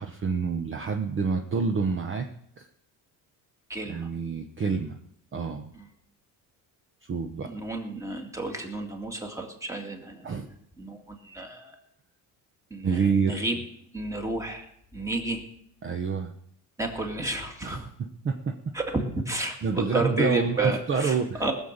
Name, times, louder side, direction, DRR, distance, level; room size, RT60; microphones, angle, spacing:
voice 1, 0.0-2.3 2.6-2.7 3.9-5.0 5.3-5.7 7.0-7.6 10.2-10.5 12.8-13.4 15.8-16.3 17.6-18.6 19.6-21.5, right 5 dB, 30° right, 5 dB, 1.0 m, -28 dB
voice 2, 3.7-4.1 5.7-5.8 7.5-10.3 10.8-11.8 12.7-13.6 13.9-14.7 14.9-15.4 16.8-17.9 18.7-21.5, right 2 dB, 10° right, 3 dB, 2.1 m, -31 dB
19.5 x 7.3 x 6.6 m, 0.72 s
cardioid pair, 140°, 39 cm